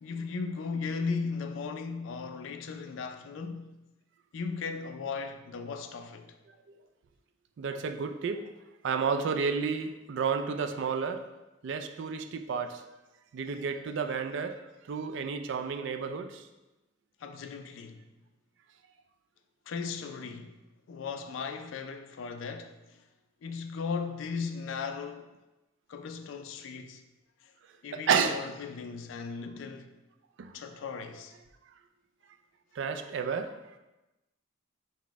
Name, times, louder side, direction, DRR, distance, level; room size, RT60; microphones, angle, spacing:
voice 1, 0.0-3.8 4.3-6.4 17.2-18.0 19.7-20.6 20.9-23.0 23.4-25.3 25.9-27.0 27.4-27.5 27.8-29.9 30.5-31.3, left 5 dB, 75° left, 0.3 m, -37 dB
voice 2, 7.6-8.5 8.8-11.3 11.6-12.8 13.3-14.6 14.9-16.4 27.9-28.4 30.4-30.6 32.7-33.5, right 6 dB, 65° right, 0.3 m, -31 dB
4.0 x 2.1 x 4.5 m
head